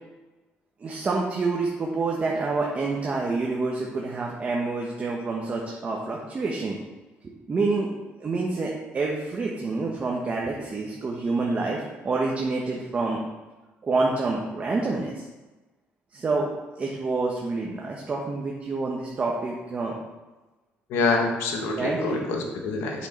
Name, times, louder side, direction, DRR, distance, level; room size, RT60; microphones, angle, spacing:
voice 1, 0.8-6.8 7.2-7.9 8.2-13.2 13.8-15.2 16.1-16.5 16.7-20.0 21.8-22.2 23.0-23.1, right 3 dB, 30° right, -2 dB, 1.2 m, -27 dB
voice 2, 20.9-23.1, left 3 dB, 85° left, 2 dB, 1.5 m, -26 dB
8.0 x 6.3 x 4.4 m, 1.2 s
cardioid pair, 110°, 4 cm